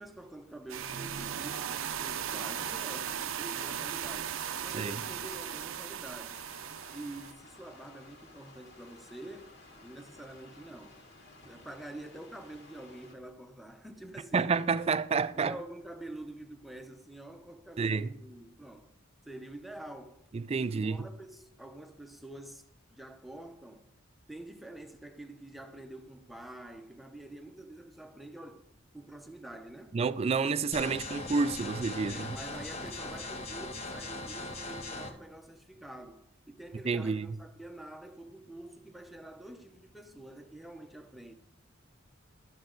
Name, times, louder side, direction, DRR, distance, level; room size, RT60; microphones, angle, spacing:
voice 1, 0.0-6.4 6.9-11.0 11.4-14.6 15.3-18.9 19.2-20.3 20.6-23.9 24.3-28.7 28.9-30.0 32.0-41.3, right 1 dB, ahead, 0.7 m, -47 dB
sound 1, 0.7-7.3, right 9 dB, 80° right, 0.5 m, -37 dB
sound 2, 6.2-13.1, left 2 dB, 60° left, 2.1 m, -55 dB
voice 2, 14.3-15.5 17.8-18.1 20.3-21.0 29.9-32.4 36.9-37.3, right 4 dB, 30° right, 0.3 m, -29 dB
sound 3, 30.7-35.1, left 2 dB, 35° left, 1.0 m, -40 dB
12.0 x 7.1 x 3.8 m
head